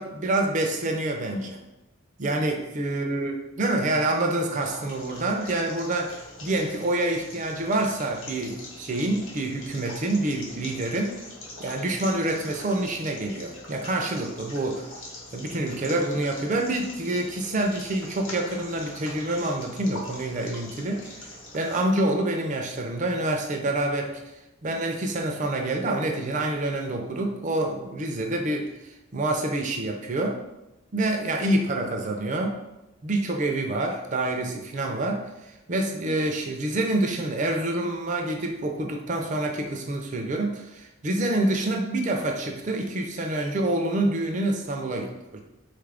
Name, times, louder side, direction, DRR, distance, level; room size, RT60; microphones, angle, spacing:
voice 1, 0.0-1.6 2.2-11.2 11.6-14.9 15.3-21.2 21.5-24.2 24.6-28.7 29.1-30.4 30.9-32.6 33.0-35.3 35.7-45.4, right 1 dB, 35° right, 2 dB, 0.4 m, -27 dB
sound 1, 4.4-21.8, left 2 dB, 70° left, 0.9 m, -43 dB
3.7 x 2.4 x 3.4 m, 0.95 s
head